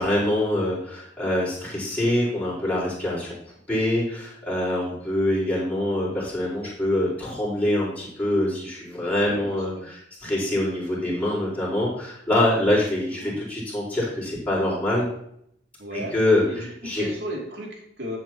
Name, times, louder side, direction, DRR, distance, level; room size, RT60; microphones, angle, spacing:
voice 1, 0.0-3.4 3.7-15.1 15.9-17.0, left 1 dB, 10° left, -8 dB, 4.5 m, -25 dB
voice 2, 9.2-9.9 12.7-12.8 13.1-13.4 15.8-16.1 16.5-18.2, right 1 dB, 65° right, -1 dB, 2.7 m, -35 dB
12.5 x 7.8 x 3.0 m, 0.71 s
head